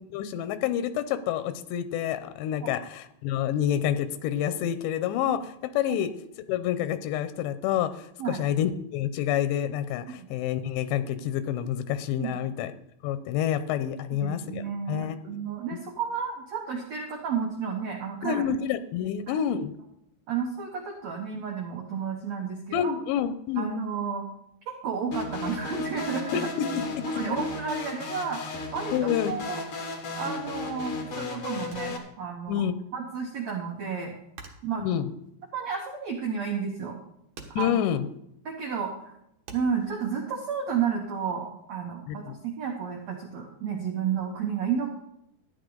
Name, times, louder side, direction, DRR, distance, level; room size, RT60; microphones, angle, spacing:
voice 1, 0.0-6.1 6.5-12.7 13.0-15.2 18.2-19.7 22.7-23.7 26.3-26.8 27.3-27.4 28.9-29.3 32.5-32.8 34.8-35.1 37.6-38.1 42.1-42.3, left 10 dB, 85° left, 11 dB, 3.0 m, -28 dB
voice 2, 14.1-18.4 19.0-19.4 20.3-22.9 23.6-24.2 24.7-26.4 27.1-29.6 30.2-34.1 34.6-34.8 35.5-37.0 37.5-37.7 38.4-39.1 39.5-44.9, right 6 dB, 85° right, 1 dB, 1.5 m, -32 dB
sound 1, 25.1-32.0, left 3 dB, 65° left, 1.3 m, -34 dB
sound 2, 31.7-32.8 33.1-36.3 36.6-37.0 37.3-39.9, right 4 dB, 60° right, 1.9 m, -49 dB
13.0 x 10.0 x 3.9 m, 0.77 s
omnidirectional pair, 4.9 m